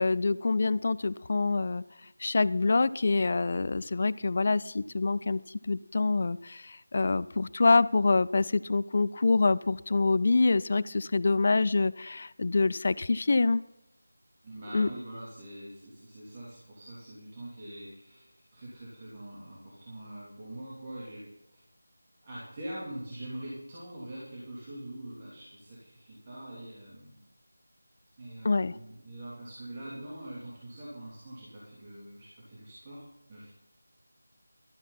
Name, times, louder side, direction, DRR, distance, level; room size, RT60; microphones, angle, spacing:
voice 1, 0.0-1.8 2.2-5.4 5.7-13.6 14.7-14.9 28.4-28.7, left 3 dB, 40° left, 19 dB, 0.4 m, -26 dB
voice 2, 14.4-21.2 22.2-27.2 28.2-33.5, right 1 dB, 25° right, -8 dB, 3.1 m, -43 dB
13.0 x 13.0 x 4.1 m, 0.89 s
figure-of-eight pair, 165°, 0 cm